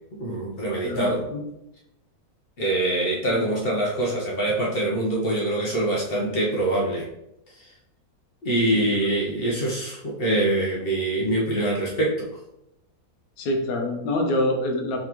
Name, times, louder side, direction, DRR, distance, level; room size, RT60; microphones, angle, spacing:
voice 1, 0.2-1.3 2.6-7.1 7.6-7.7 8.4-12.3, right 1 dB, 50° left, -3 dB, 0.8 m, -24 dB
voice 2, 0.8-1.4 3.3-3.4 8.7-8.9 13.4-15.0, left 1 dB, 75° left, 3 dB, 1.1 m, -26 dB
3.6 x 3.5 x 2.9 m, 0.84 s
omnidirectional pair, 1.6 m